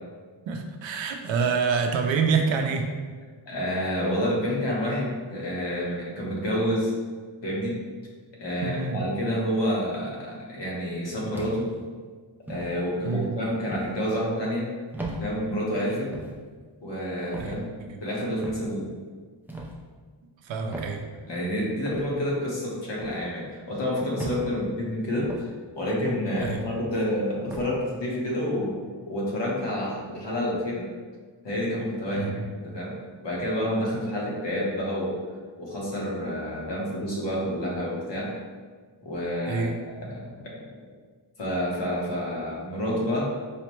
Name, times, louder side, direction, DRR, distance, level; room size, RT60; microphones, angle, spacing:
voice 1, 0.5-2.9 8.6-9.0 13.0-13.4 17.4-17.5 20.4-21.0 26.4-26.6 32.1-32.4 39.5-39.8, right 5 dB, 70° right, 4 dB, 0.5 m, -26 dB
voice 2, 3.4-6.9 7.4-7.8 8.4-11.7 12.5-14.7 15.2-16.1 16.8-17.7 18.0-18.9 21.2-25.5 25.8-28.8 29.1-30.9 31.4-32.9 33.2-35.2 35.6-38.3 39.0-40.7 41.4-43.3, equal, 60° left, -4 dB, 1.1 m, -29 dB
sound 1, 11.3-11.8 12.5-12.7 13.7-13.9 14.9-15.2 16.1-16.4 17.3-17.6 18.4-18.7 19.5-19.8 20.7-21.0 21.9-22.1 23.0-23.2 24.2-24.4 25.2-25.5 26.4-26.6 27.5-27.7, right 2 dB, 5° right, 0.4 m, -37 dB
4.9 x 2.1 x 3.0 m, 1.5 s
wide cardioid pair, 125°, 47 cm